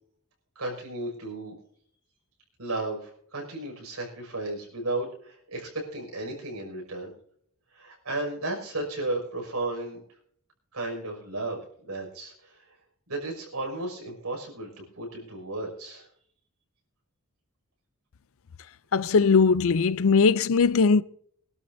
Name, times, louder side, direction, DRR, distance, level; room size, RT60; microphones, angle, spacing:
voice 1, 0.6-1.5 2.6-7.1 7.7-10.0 10.7-12.6 13.1-16.1, right 2 dB, 85° right, 6.1 m, -34 dB
voice 2, 18.9-21.0, left 5 dB, 65° left, 0.5 m, -20 dB
24.0 x 12.0 x 2.7 m
head